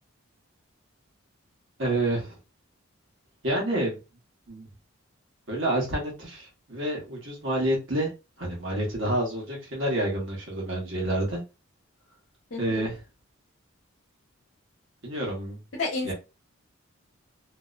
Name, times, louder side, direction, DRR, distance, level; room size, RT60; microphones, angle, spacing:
voice 1, 1.8-2.4 3.4-4.0 4.5-4.7 5.5-8.1 8.4-11.4 12.6-13.0 15.0-15.6 16.0-16.1, right 1 dB, 60° right, -2 dB, 1.1 m, -28 dB
voice 2, 12.5-12.8 15.7-16.1, left 3 dB, 65° left, -3 dB, 0.9 m, -31 dB
2.5 x 2.1 x 2.4 m, 0.28 s
head